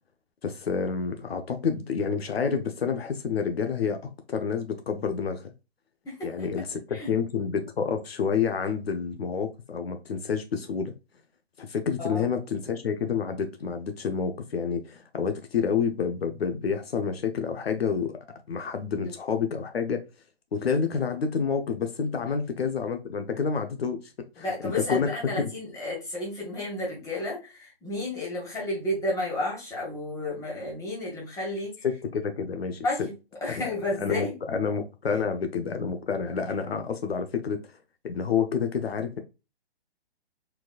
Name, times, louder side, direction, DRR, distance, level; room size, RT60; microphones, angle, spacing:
voice 1, 0.4-4.0 4.3-5.5 6.2-10.9 11.6-18.1 18.5-20.0 20.5-25.1 25.4-25.5 31.8-32.8 33.5-33.6 34.0-37.6 38.0-39.2, left 6 dB, 70° left, 0.9 m, -28 dB
voice 2, 6.0-6.5 6.9-7.1 12.0-12.3 19.0-19.1 24.4-31.9 32.8-33.1 33.4-34.4, left 1 dB, 10° left, 2.0 m, -32 dB
4.6 x 3.8 x 2.5 m
hypercardioid pair, 150°, 31 cm